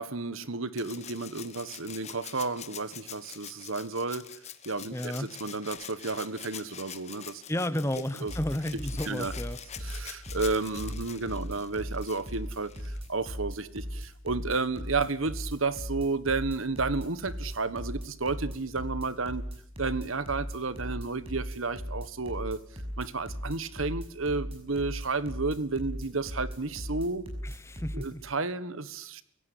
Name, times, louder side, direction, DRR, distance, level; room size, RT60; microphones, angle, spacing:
voice 1, 0.0-4.2 4.6-7.4 8.2-8.3 9.1-9.3 9.8-19.5 19.8-22.6 23.0-27.2 27.9-29.2, right 3 dB, 90° right, 15 dB, 1.5 m, -32 dB
Rattle (instrument), 0.8-13.1 14.5-14.6, left 9 dB, 35° left, 1.4 m, -45 dB
voice 2, 4.9-5.3 7.5-9.6 10.4-10.5 27.4-28.2, left 1 dB, 15° left, 15 dB, 1.0 m, -32 dB
sound 1, 8.3-28.1, equal, 30° right, 6.4 m, -37 dB
24.0 x 17.0 x 9.8 m, 0.65 s
head